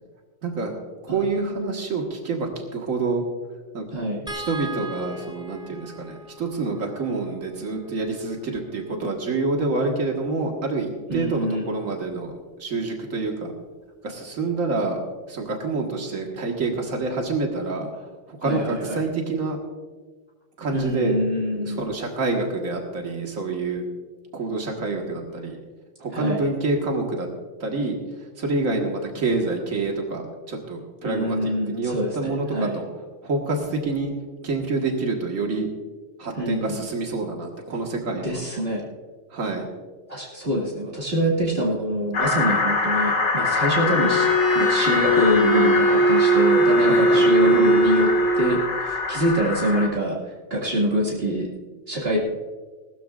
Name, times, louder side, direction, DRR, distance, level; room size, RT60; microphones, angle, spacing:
voice 1, 0.4-0.7 1.0-3.2 3.7-3.9 4.3-13.5 14.0-15.0 15.3-19.6 20.6-21.2 21.5-23.8 24.3-25.6 26.0-27.3 27.6-32.9 33.2-34.1 34.4-35.7 36.2-38.4 39.3-39.7 46.8-47.5, right 3 dB, 80° right, 1 dB, 2.0 m, -27 dB
voice 2, 3.9-4.3 11.1-11.8 18.4-19.0 20.7-21.8 26.1-26.4 31.0-32.8 36.3-36.8 38.2-38.8 40.1-44.3 44.5-50.2 50.5-51.5 51.9-52.2, equal, 50° right, -4 dB, 2.4 m, -25 dB
sound 1, 4.3-10.6 12.1-12.3 12.6-12.8, right 1 dB, 5° right, 1.6 m, -41 dB
sound 2, 42.1-49.9, left 3 dB, 80° left, 2.2 m, -24 dB
Bowed string instrument, 43.8-48.7, right 1 dB, 65° left, 2.5 m, -20 dB
19.5 x 13.0 x 2.5 m, 1.4 s
omnidirectional pair, 1.3 m